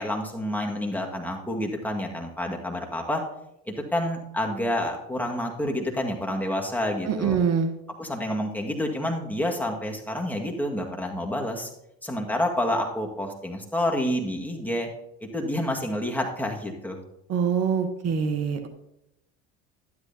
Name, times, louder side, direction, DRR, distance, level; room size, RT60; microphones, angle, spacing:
voice 1, 0.0-3.2 3.7-7.4 8.0-11.7 12.0-14.9 15.3-17.0, left 1 dB, 5° left, 1 dB, 1.7 m, -28 dB
voice 2, 7.1-7.7 17.3-18.7, right 6 dB, 50° right, 7 dB, 1.1 m, -24 dB
12.0 x 11.0 x 2.8 m, 0.82 s
supercardioid pair, 85°, 33 cm